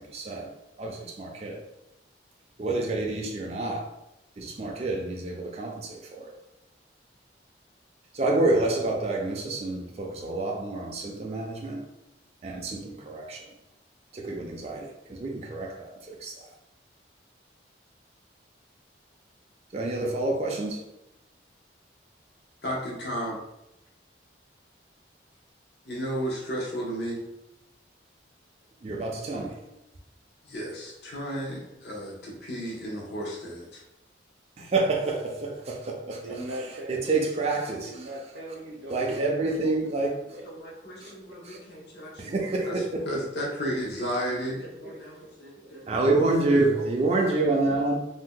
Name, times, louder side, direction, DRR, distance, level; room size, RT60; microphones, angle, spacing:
voice 1, 0.0-1.6 2.6-4.0 4.4-6.3 8.1-11.9 12.4-13.5 14.1-16.5 19.7-20.8 28.8-29.6 34.6-36.4 36.9-38.1 38.9-40.2 41.0-41.1 41.4-41.6 42.2-43.1 45.9-48.0, right 2 dB, 35° right, 0 dB, 0.3 m, -28 dB
voice 2, 22.6-23.4 25.9-27.2 29.3-29.6 30.4-33.8 40.4-45.8 46.7-46.8 47.2-47.3, equal, 65° left, -3 dB, 0.7 m, -34 dB
voice 3, 36.1-37.2 37.8-40.4 41.0-41.6 44.1-44.2 44.5-44.6 44.8-45.0, right 1 dB, 80° right, -3 dB, 0.6 m, -41 dB
2.7 x 2.2 x 3.6 m, 0.88 s
head